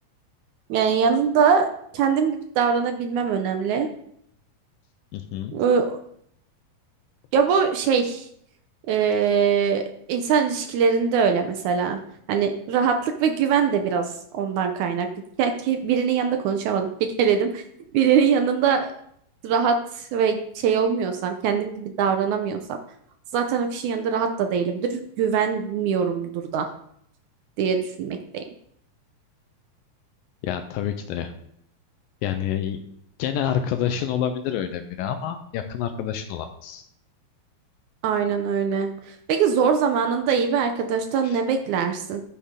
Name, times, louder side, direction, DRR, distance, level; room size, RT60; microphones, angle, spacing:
voice 1, 0.7-1.7 1.9-3.9 5.5-6.0 7.3-8.3 8.9-12.0 12.3-15.1 15.4-17.6 17.9-18.9 19.4-22.6 23.3-26.7 27.6-28.4 38.0-42.2, right 6 dB, 80° right, 5 dB, 1.7 m, -22 dB
voice 2, 5.1-5.5 30.4-31.3 32.2-32.8 33.2-36.8 41.2-41.4, left 9 dB, 80° left, 7 dB, 2.3 m, -28 dB
14.0 x 6.6 x 3.7 m, 0.71 s
omnidirectional pair, 4.2 m